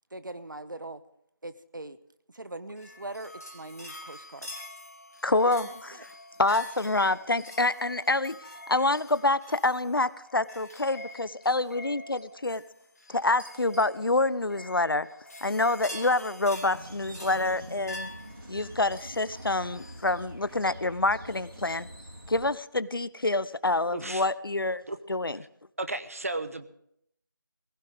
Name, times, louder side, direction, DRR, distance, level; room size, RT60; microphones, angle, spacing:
voice 1, 0.1-1.0 1.4-2.0 2.3-4.5 5.6-6.0, right 2 dB, 65° right, 12 dB, 1.1 m, -41 dB
sound 1, 2.8-20.2, left 1 dB, 45° left, 2.4 m, -46 dB
voice 2, 5.2-6.1 6.4-8.4 8.7-12.6 13.1-15.1 15.4-18.1 18.5-21.9 22.3-24.8 25.1-25.4, left 2 dB, 80° left, 17 dB, 0.8 m, -27 dB
sound 2, 16.6-22.5, equal, 80° right, 3.8 m, -45 dB
voice 3, 23.9-24.2 24.9-25.0 25.8-26.7, right 2 dB, 40° right, 10 dB, 1.0 m, -34 dB
19.5 x 15.5 x 3.6 m, 0.73 s
figure-of-eight pair, 175°, 12 cm